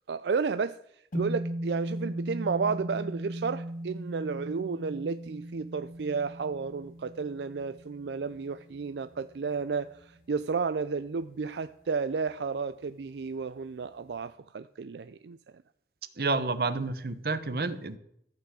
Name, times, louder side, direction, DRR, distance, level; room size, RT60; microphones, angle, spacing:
voice 1, 0.1-0.8 1.1-15.4, right 5 dB, 80° right, 0.4 m, -32 dB
sound 1, 1.1-9.6, right 1 dB, 50° left, 2.1 m, -37 dB
voice 2, 16.2-18.0, right 3 dB, 60° right, 1.0 m, -29 dB
14.5 x 5.9 x 8.2 m
head